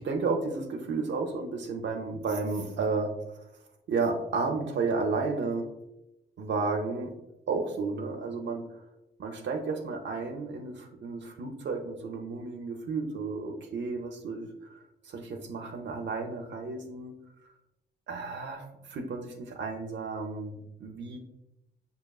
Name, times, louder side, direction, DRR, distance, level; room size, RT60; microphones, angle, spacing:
voice 1, 0.0-3.4 3.9-5.7 6.4-7.1 7.5-8.8 9.2-14.5 15.0-17.1 18.1-21.2, right 4 dB, 75° right, 2 dB, 0.6 m, -32 dB
5.6 x 2.8 x 2.3 m, 0.89 s
cardioid pair, 100°, 19 cm